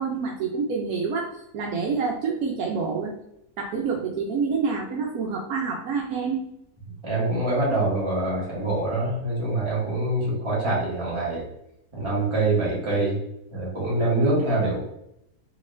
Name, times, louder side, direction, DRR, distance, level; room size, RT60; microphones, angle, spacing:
voice 1, 0.0-3.1 3.6-6.4, right 5 dB, 75° right, -1 dB, 1.0 m, -27 dB
voice 2, 7.0-11.4 11.9-13.2 13.5-14.8, right 2 dB, 20° right, -6 dB, 1.3 m, -24 dB
4.0 x 2.9 x 2.5 m, 0.79 s
omnidirectional pair, 1.6 m